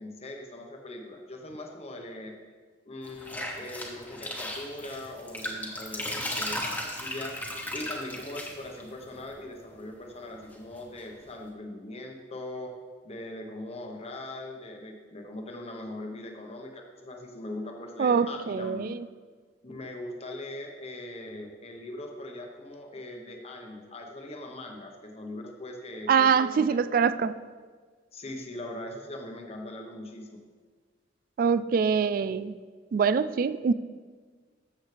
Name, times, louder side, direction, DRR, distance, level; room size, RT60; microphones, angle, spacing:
voice 1, 0.0-2.3 2.9-7.4 7.7-12.8 13.0-19.0 19.6-26.8 28.1-30.4, left 1 dB, 35° left, 3 dB, 1.1 m, -40 dB
sound 1, 3.0-9.3 10.2-11.0, left 1 dB, 10° left, 1.2 m, -36 dB
voice 2, 18.0-19.0 26.1-27.4 31.4-32.5 32.9-33.7, right 6 dB, 50° right, 15 dB, 0.3 m, -24 dB
13.5 x 7.2 x 3.3 m, 1.5 s
head